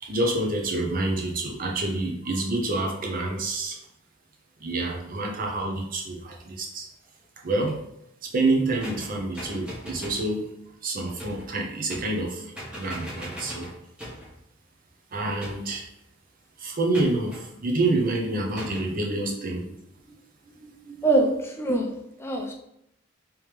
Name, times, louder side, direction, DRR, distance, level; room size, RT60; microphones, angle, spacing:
voice 1, 0.0-3.8 4.6-6.9 7.4-7.8 8.2-10.5 10.8-12.5 12.7-13.7 15.1-15.9 16.6-19.7 20.0-20.1 20.5-21.0, right 2 dB, 45° right, 0 dB, 0.7 m, -27 dB
sound 1, 8.8-10.3 11.2-11.5 11.9-12.3 12.5-14.3 15.4-15.9 16.9-17.4 18.6-18.9, equal, 5° right, 1.0 m, -39 dB
voice 2, 21.0-22.5, right 2 dB, 15° left, 1 dB, 0.5 m, -24 dB
3.1 x 3.1 x 3.3 m, 0.78 s
head